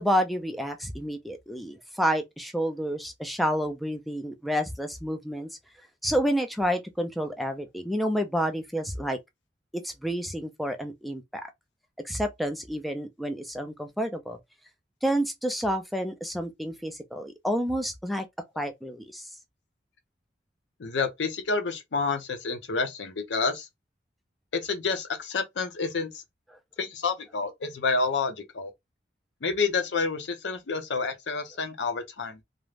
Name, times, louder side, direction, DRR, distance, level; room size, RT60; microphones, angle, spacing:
voice 1, 0.0-5.5 6.0-9.2 9.7-11.5 12.0-14.4 15.0-18.3 18.6-19.3, equal, ahead, 0.3 m, -29 dB
voice 2, 20.8-23.7 24.5-26.2 26.8-28.7 29.4-32.4, left 4 dB, 85° left, 0.6 m, -29 dB
2.4 x 2.1 x 3.2 m
head